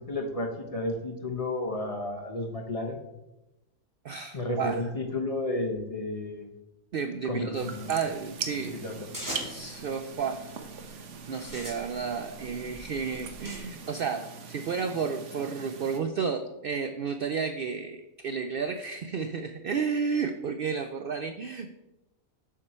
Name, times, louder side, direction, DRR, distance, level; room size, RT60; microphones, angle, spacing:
voice 1, 0.0-3.0 4.3-6.5 7.2-7.9 8.6-8.9, left 2 dB, 30° left, 1 dB, 0.9 m, -32 dB
voice 2, 4.0-4.8 6.9-8.8 9.4-10.5 11.3-21.8, right 6 dB, 75° right, 8 dB, 0.5 m, -32 dB
sound 1, 7.5-16.0, right 5 dB, 60° right, 1.1 m, -42 dB
sound 2, 9.1-9.8 10.5-10.9 11.3-13.6, equal, 15° right, 2.3 m, -40 dB
8.6 x 6.6 x 4.3 m, 0.98 s
omnidirectional pair, 1.5 m